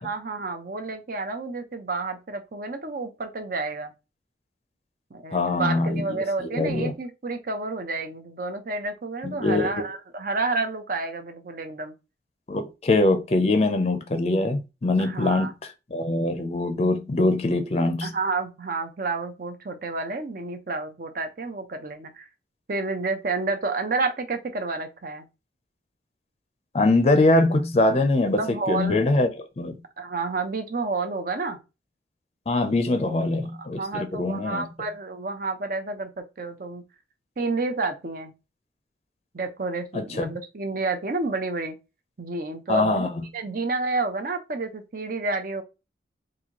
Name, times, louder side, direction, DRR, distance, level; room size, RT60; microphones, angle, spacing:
voice 1, 0.0-3.9 5.1-11.9 15.0-15.5 18.0-22.3 22.7-25.3 28.3-29.0 30.0-31.6 33.0-33.2 33.8-36.8 37.4-38.3 39.3-41.7 42.2-45.6, right 3 dB, 50° right, 0.6 m, -30 dB
voice 2, 5.3-6.2 6.5-6.9 9.2-9.7 12.5-15.5 15.9-18.1 26.7-28.4 28.7-29.8 32.5-34.7 39.9-40.3 42.7-43.1, left 2 dB, 35° left, 0.5 m, -23 dB
4.1 x 2.6 x 2.9 m
head